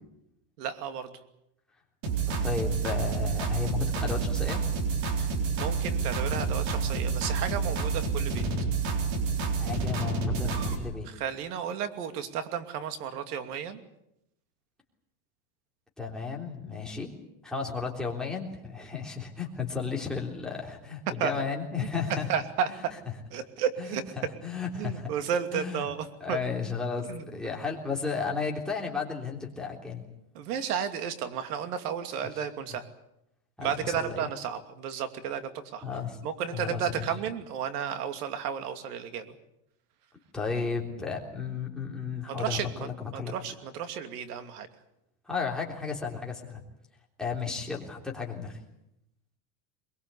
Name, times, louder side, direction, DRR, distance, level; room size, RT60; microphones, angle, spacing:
voice 1, 0.6-1.2 5.2-8.5 11.0-13.8 21.2-21.3 22.3-22.7 23.3-24.0 24.8-26.4 27.0-27.5 30.3-32.9 33.6-35.9 36.2-39.4 42.3-42.9 43.1-44.7, right 8 dB, 75° right, 9 dB, 2.8 m, -33 dB
sound 1, 2.0-10.8, right 4 dB, 50° right, 4.1 m, -29 dB
voice 2, 2.4-4.6 9.6-11.1 16.0-17.1 17.4-22.3 22.7-22.8 23.8-25.1 25.5-25.8 26.2-30.0 33.6-34.2 35.8-36.2 36.5-37.0 40.3-43.3 45.3-46.6 47.2-48.6, left 5 dB, ahead, -2 dB, 3.5 m, -33 dB
22.5 x 22.0 x 8.4 m, 0.82 s
supercardioid pair, 160°, 46 cm